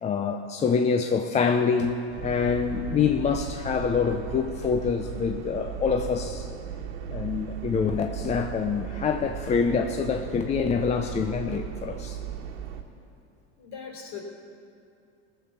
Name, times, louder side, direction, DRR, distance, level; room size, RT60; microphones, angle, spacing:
voice 1, 0.0-1.9 2.2-6.5 7.1-12.2, left 6 dB, 20° left, 6 dB, 0.5 m, -26 dB
sound 1, 2.1-12.8, right 7 dB, 75° right, 1.5 m, -36 dB
voice 2, 13.6-14.2, left 7 dB, 50° left, 1 dB, 3.5 m, -39 dB
19.0 x 6.8 x 7.2 m, 2.6 s
supercardioid pair, 120°, 35 cm